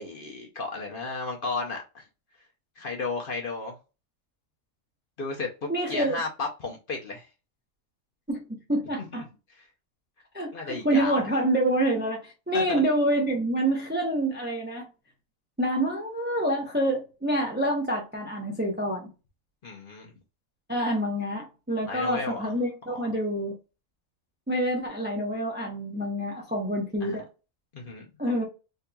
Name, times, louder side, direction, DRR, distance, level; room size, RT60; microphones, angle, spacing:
voice 1, 0.0-2.0 2.8-3.8 5.2-7.3 9.0-9.2 9.5-9.7 10.5-11.2 12.5-12.8 19.6-20.1 21.8-22.5 27.0-27.2 27.7-28.1, left 3 dB, 50° left, 0.7 m, -34 dB
voice 2, 5.7-6.2 8.3-9.2 10.3-14.9 15.6-19.1 20.7-23.5 24.5-27.2 28.2-28.5, right 1 dB, 15° right, 0.5 m, -27 dB
3.7 x 2.7 x 2.2 m
omnidirectional pair, 1.4 m